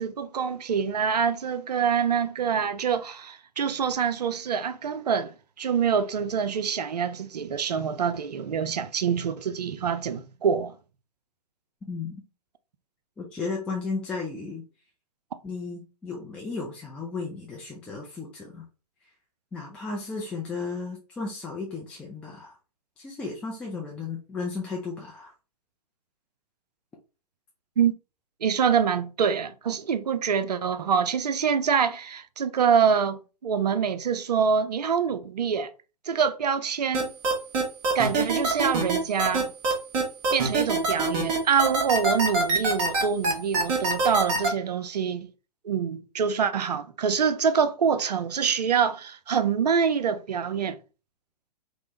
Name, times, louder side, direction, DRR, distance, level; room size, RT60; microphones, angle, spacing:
voice 1, 0.0-5.3 5.6-10.7 27.8-27.9 28.4-35.7 36.1-37.1 37.9-39.5 40.3-45.3 45.6-50.8, right 7 dB, 70° right, 0.4 m, -25 dB
voice 2, 11.9-12.2 13.2-14.6 15.4-18.7 19.5-22.5 23.0-25.3, left 4 dB, 5° left, 0.3 m, -34 dB
sound 1, 36.9-44.5, right 3 dB, 30° right, 1.0 m, -24 dB
3.3 x 2.0 x 2.9 m
figure-of-eight pair, 115°, 21 cm